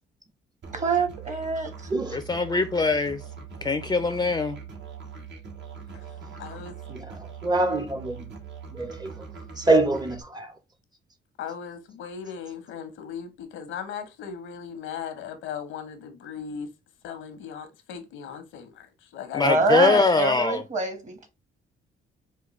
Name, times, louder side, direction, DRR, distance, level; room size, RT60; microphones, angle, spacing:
Musical instrument, 0.6-10.2, right 6 dB, 65° right, 1.1 m, -42 dB
voice 1, 0.7-1.9 19.4-21.3, right 4 dB, 40° right, 1.3 m, -26 dB
voice 2, 2.1-3.2 3.6-4.6 19.3-20.6, left 3 dB, 20° left, 0.4 m, -22 dB
voice 3, 6.4-6.8 11.4-16.7 17.0-19.5 19.8-20.1, left 7 dB, 90° left, 0.9 m, -37 dB
voice 4, 7.4-8.3 8.7-9.3 9.6-10.5, right 2 dB, 20° right, 0.7 m, -25 dB
5.0 x 2.2 x 3.1 m
cardioid pair, 90°, 20 cm